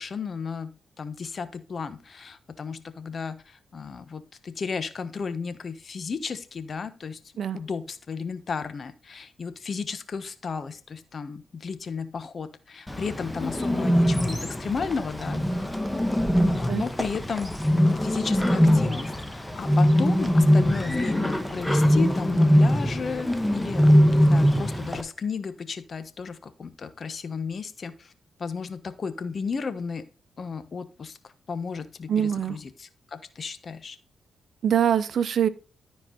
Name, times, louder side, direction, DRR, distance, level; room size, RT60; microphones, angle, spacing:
voice 1, 0.0-7.2 7.5-15.6 16.5-17.5 18.0-28.1 28.4-30.1 30.4-31.2 31.5-34.0, left 5 dB, 55° left, 12 dB, 1.1 m, -34 dB
Bird, 12.9-25.0, equal, 10° left, 1.4 m, -22 dB
voice 2, 32.1-32.6 34.6-35.5, right 9 dB, 65° right, 15 dB, 0.7 m, -23 dB
13.0 x 4.7 x 3.9 m, 0.36 s
supercardioid pair, 50°, 0 cm